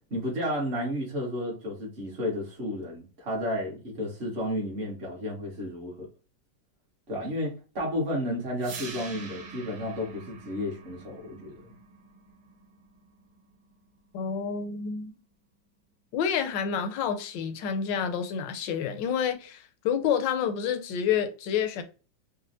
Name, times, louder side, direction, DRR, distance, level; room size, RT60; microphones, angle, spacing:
voice 1, 0.1-6.1 7.1-11.7, left 1 dB, 40° right, 1.2 m, -32 dB
sound 1, 8.6-14.6, right 4 dB, 65° right, 1.6 m, -46 dB
voice 2, 14.1-15.1 16.1-21.8, left 7 dB, 80° left, 1.3 m, -28 dB
4.2 x 2.1 x 2.6 m
omnidirectional pair, 2.0 m